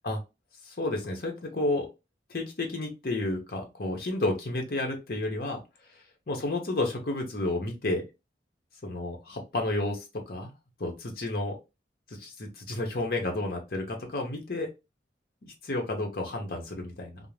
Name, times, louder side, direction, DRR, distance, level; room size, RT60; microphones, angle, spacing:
voice 1, 0.7-1.9 2.3-5.6 6.3-8.0 8.8-10.5 10.8-11.5 12.2-14.7 15.6-17.2, left 2 dB, 55° left, 1 dB, 0.7 m, -31 dB
2.5 x 2.0 x 3.1 m, 0.25 s
head